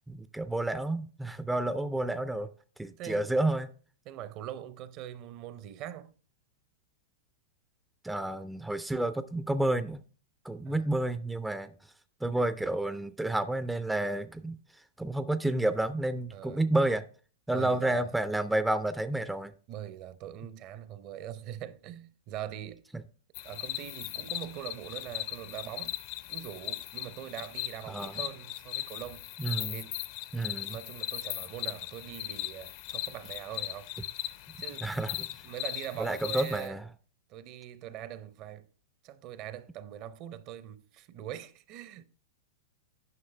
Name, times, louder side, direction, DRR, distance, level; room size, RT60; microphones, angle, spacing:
voice 1, 0.1-2.5 2.8-3.7 8.0-10.0 10.4-11.7 12.2-14.6 15.0-17.0 17.5-19.5 27.9-28.1 29.4-29.8 30.3-30.8 34.8-35.3 36.0-36.8, right 1 dB, 5° right, 0.4 m, -30 dB
voice 2, 3.0-3.4 4.1-6.1 10.6-10.9 16.3-16.6 17.5-18.1 19.7-22.8 23.4-25.9 26.3-29.3 29.7-30.0 30.4-33.9 34.6-34.9 35.4-36.8 37.3-38.7 39.0-42.0, right 11 dB, 45° right, 0.6 m, -42 dB
sound 1, 23.3-36.7, left 15 dB, 50° left, 0.6 m, -38 dB
9.6 x 5.6 x 3.3 m
hypercardioid pair, 110°, 0 cm